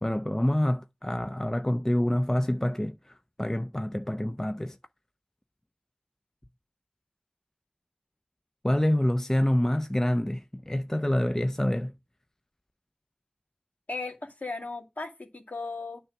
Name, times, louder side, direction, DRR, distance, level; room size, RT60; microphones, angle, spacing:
voice 1, 0.0-4.8 8.6-11.9, left 1 dB, 15° left, 0.4 m, -27 dB
voice 2, 13.9-16.0, left 3 dB, 55° left, 2.1 m, -36 dB
9.4 x 3.4 x 5.8 m
wide cardioid pair, 45°, 3 cm